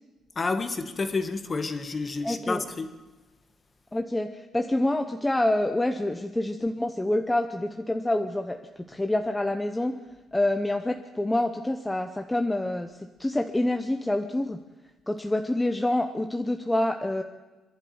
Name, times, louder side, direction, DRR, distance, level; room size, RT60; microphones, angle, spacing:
voice 1, 0.3-3.0, left 3 dB, 25° left, 1.7 m, -30 dB
voice 2, 2.2-2.6 3.9-8.6 8.9-9.9 10.3-12.9 13.2-14.6 15.1-17.2, left 1 dB, 10° left, 0.9 m, -27 dB
25.5 x 11.5 x 9.5 m
cardioid pair, 140°, 0 cm